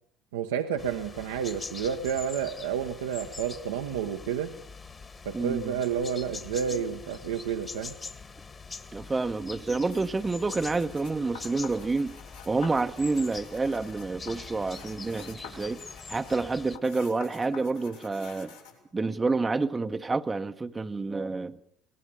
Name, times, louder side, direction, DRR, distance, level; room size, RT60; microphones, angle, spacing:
voice 1, 0.3-4.6 5.2-7.9, right 8 dB, 75° right, 1.0 m, -30 dB
sound 1, 0.8-16.8, left 4 dB, 30° left, 1.8 m, -44 dB
voice 2, 5.3-5.8 8.9-12.1 12.4-15.8 16.1-18.5 18.9-21.6, right 3 dB, 20° right, 0.9 m, -28 dB
sound 2, 9.8-18.8, left 6 dB, 80° left, 5.2 m, -48 dB
23.5 x 19.5 x 6.9 m
figure-of-eight pair, 60°, 0 cm